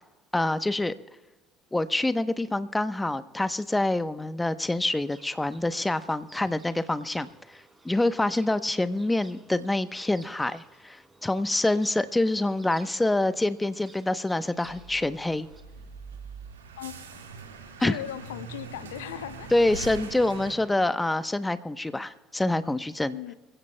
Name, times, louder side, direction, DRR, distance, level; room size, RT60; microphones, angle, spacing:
voice 1, 0.3-0.9 1.7-15.5 17.8-18.0 19.5-23.2, left 2 dB, 10° left, 12 dB, 0.8 m, -26 dB
sound 1, 5.0-15.6, right 2 dB, 20° right, 3.8 m, -55 dB
sound 2, 14.6-20.6, right 5 dB, 90° right, 1.8 m, -42 dB
voice 2, 17.8-19.5 23.1-23.3, left 12 dB, 80° left, 14 dB, 0.6 m, -37 dB
26.5 x 16.0 x 2.2 m, 1.2 s
hypercardioid pair, 60°, 0 cm